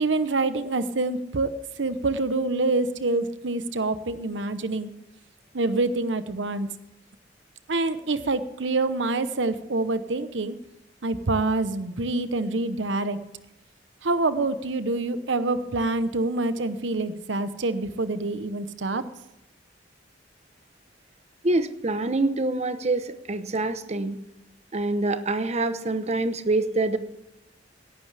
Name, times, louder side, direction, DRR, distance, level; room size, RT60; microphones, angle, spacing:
voice 1, 0.0-4.9 5.5-6.7 7.7-10.6 11.0-13.2 14.0-19.1, right 2 dB, 90° right, 12 dB, 0.9 m, -26 dB
voice 2, 21.4-24.2 24.7-27.0, right 2 dB, 35° right, 10 dB, 0.9 m, -25 dB
17.5 x 11.5 x 3.4 m, 0.91 s
head